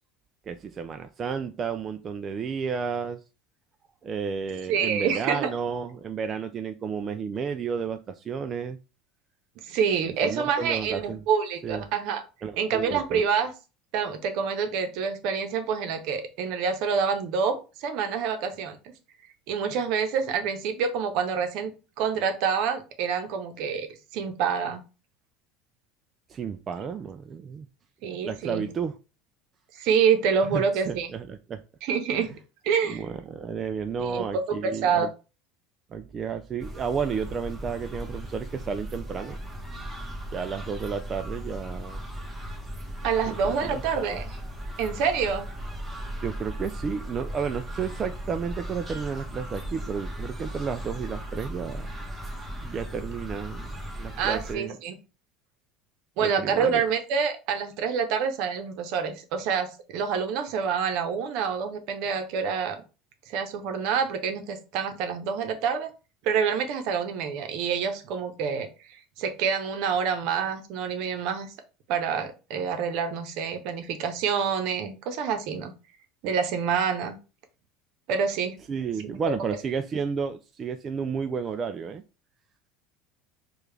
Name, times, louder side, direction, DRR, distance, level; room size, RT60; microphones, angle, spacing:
voice 1, 0.5-3.2 4.0-8.8 10.0-11.2 11.6-11.8 12.4-13.2 26.3-27.7 28.2-29.0 30.5-31.6 32.2-32.3 32.9-35.1 35.9-39.4 40.3-42.0 43.3-44.2 46.2-51.9 52.6-54.8 56.2-56.8 78.7-82.0, right 6 dB, 35° right, 8 dB, 0.3 m, -32 dB
voice 2, 4.7-5.5 9.6-12.2 12.6-13.5 13.9-18.8 19.5-21.7 22.0-23.9 24.1-24.8 28.0-28.7 29.7-31.1 31.8-32.4 32.6-33.0 34.0-34.2 34.6-35.1 43.0-44.2 44.8-45.5 54.2-54.9 56.2-62.8 63.3-65.9 66.2-71.5 71.9-75.7 76.2-77.2 78.1-78.6 79.0-79.2, right 6 dB, 65° right, 7 dB, 0.8 m, -27 dB
sound 1, 36.6-54.5, equal, 15° right, 1.2 m, -37 dB
4.7 x 2.4 x 3.3 m, 0.32 s
hypercardioid pair, 90°, 0 cm